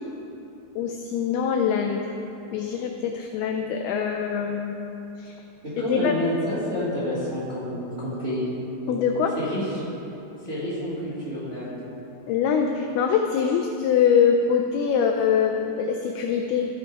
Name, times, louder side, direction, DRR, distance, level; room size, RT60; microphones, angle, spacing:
voice 1, 0.8-2.0 2.5-4.8 5.2-5.4 5.9-6.1 8.9-9.4 12.3-16.7, left 7 dB, 85° left, 3 dB, 2.3 m, -23 dB
voice 2, 5.6-8.5 9.4-9.8 10.5-11.8, equal, 20° right, -10 dB, 1.9 m, -28 dB
15.0 x 5.8 x 4.6 m, 2.9 s
omnidirectional pair, 5.0 m